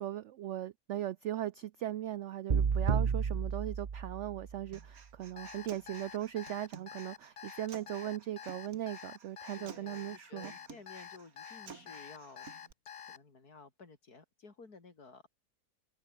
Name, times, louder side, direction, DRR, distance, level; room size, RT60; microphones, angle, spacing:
voice 1, 0.0-10.5, right 12 dB, 85° right, 0.6 m, -38 dB
sound 1, 2.5-4.6, right 6 dB, 35° right, 0.9 m, -31 dB
Human voice, 4.7-12.7, right 5 dB, 55° right, 2.3 m, -54 dB
Alarm, 5.4-13.2, left 8 dB, 45° left, 0.8 m, -48 dB
voice 2, 9.5-12.5 13.0-15.2, left 4 dB, 65° left, 3.7 m, -54 dB
omnidirectional pair, 1.8 m